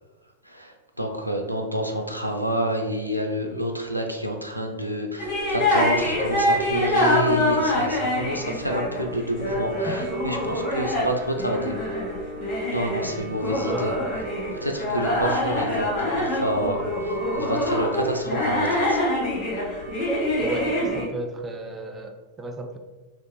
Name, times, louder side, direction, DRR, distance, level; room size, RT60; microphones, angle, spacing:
voice 1, 0.4-11.8 12.7-13.9 14.5-19.1, equal, 90° right, 2 dB, 0.4 m, -28 dB
sound 1, 5.2-21.0, left 1 dB, 45° left, 1.1 m, -25 dB
voice 2, 20.4-22.8, right 2 dB, 20° right, 4 dB, 0.4 m, -33 dB
3.1 x 2.5 x 3.0 m, 1.2 s
figure-of-eight pair, 90°, 0 cm